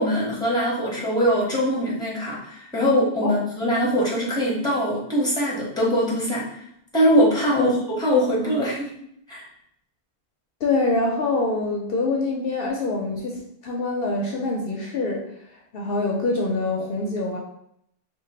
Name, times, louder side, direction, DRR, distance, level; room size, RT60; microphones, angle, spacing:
voice 1, 0.0-6.5 6.9-8.9 9.3-9.4, equal, 5° left, -5 dB, 0.9 m, -22 dB
voice 2, 10.6-15.2 15.7-17.4, left 3 dB, 65° left, 0 dB, 0.7 m, -25 dB
3.0 x 2.3 x 3.8 m, 0.73 s
omnidirectional pair, 1.1 m